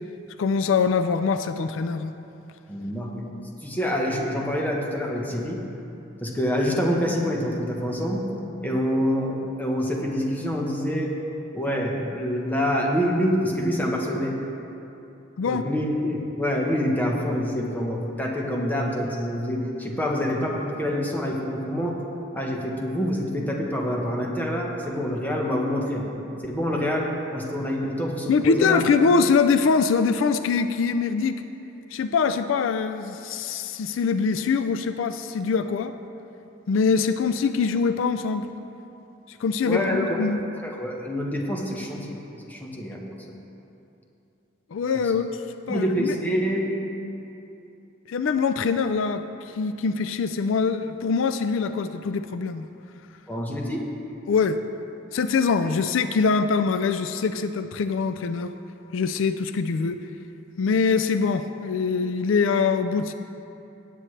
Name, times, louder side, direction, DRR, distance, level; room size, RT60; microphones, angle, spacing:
voice 1, 0.4-2.1 15.4-15.6 28.3-31.3 31.9-35.9 36.7-38.5 39.4-40.4 44.7-45.3 45.7-46.1 48.1-52.7 54.3-54.6 55.1-58.5 58.9-60.0 60.6-63.1, left 5 dB, 75° left, 10 dB, 0.4 m, -23 dB
voice 2, 2.7-3.2 3.6-5.6 6.2-8.3 8.6-11.1 11.5-14.4 15.5-22.0 22.3-26.1 26.4-28.8 39.7-40.3 40.6-42.2 42.4-43.0 45.7-46.7 53.3-53.9, equal, 10° left, -1 dB, 1.1 m, -26 dB
17.5 x 7.7 x 3.3 m, 2.8 s
head